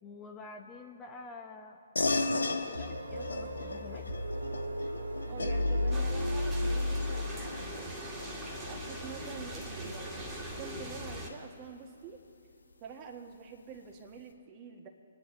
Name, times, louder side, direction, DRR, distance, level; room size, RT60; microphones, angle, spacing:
voice 1, 0.0-4.1, left 3 dB, 15° left, 2 dB, 0.9 m, -48 dB
sound 1, 2.0-11.8, left 2 dB, 75° left, 1.3 m, -38 dB
sound 2, 2.7-7.7, left 1 dB, 85° right, 2.1 m, -33 dB
voice 2, 5.3-7.9 8.5-12.2 12.8-14.9, right 6 dB, 30° right, 3 dB, 1.7 m, -47 dB
sound 3, 5.9-11.3, equal, 10° right, 2.4 m, -41 dB
28.5 x 10.5 x 4.0 m, 2.6 s
figure-of-eight pair, 130°, 0 cm